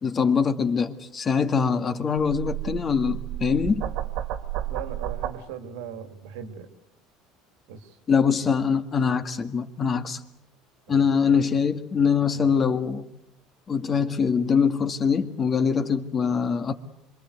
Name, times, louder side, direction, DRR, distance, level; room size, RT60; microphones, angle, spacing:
voice 1, 0.0-3.8 8.1-10.2 10.9-13.0 13.7-16.7, left 6 dB, 30° left, 8 dB, 1.8 m, -23 dB
sound 1, 2.2-5.4, right 12 dB, 65° right, 2.3 m, -32 dB
voice 2, 4.6-6.7 7.7-8.0 10.9-11.4 12.3-12.5, right 8 dB, 90° right, 8 dB, 2.8 m, -39 dB
27.0 x 23.0 x 8.2 m, 0.82 s
supercardioid pair, 125°, 0 cm